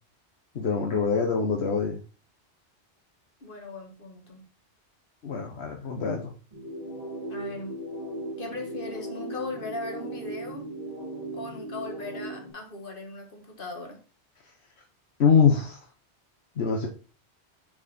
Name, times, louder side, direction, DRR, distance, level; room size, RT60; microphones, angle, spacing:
voice 1, 0.5-2.0 5.2-6.3 15.2-15.8 16.6-16.9, left 6 dB, 75° left, 1.3 m, -24 dB
voice 2, 3.4-4.4 6.9-7.0 7.3-7.8 8.4-10.7 11.3-14.0, left 2 dB, 55° left, 1.8 m, -38 dB
sound 1, 6.5-12.5, right 1 dB, 40° right, 2.8 m, -37 dB
7.4 x 4.7 x 4.1 m
omnidirectional pair, 1.1 m